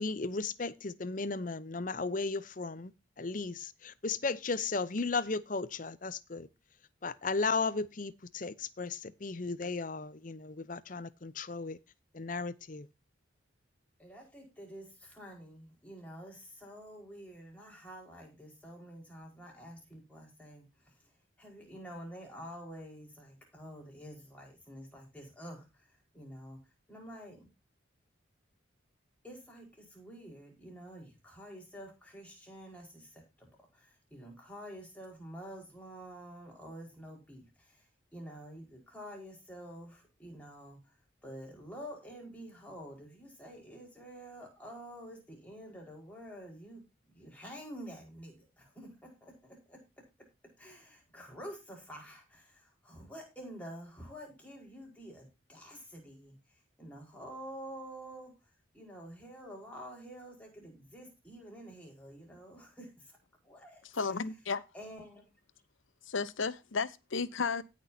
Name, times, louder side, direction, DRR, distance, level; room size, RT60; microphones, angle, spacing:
voice 1, 0.0-2.9 3.2-6.5 7.0-11.8 12.1-12.9, left 4 dB, 40° left, 0.7 m, -35 dB
voice 2, 14.0-21.1 21.4-27.5 29.2-33.5 33.7-41.0 41.2-46.8 47.1-50.0 50.6-63.2 63.4-64.2 64.7-65.3, equal, 5° left, 4.7 m, -49 dB
voice 3, 63.9-64.6 66.1-67.6, left 4 dB, 80° left, 0.8 m, -33 dB
17.5 x 6.1 x 2.7 m
head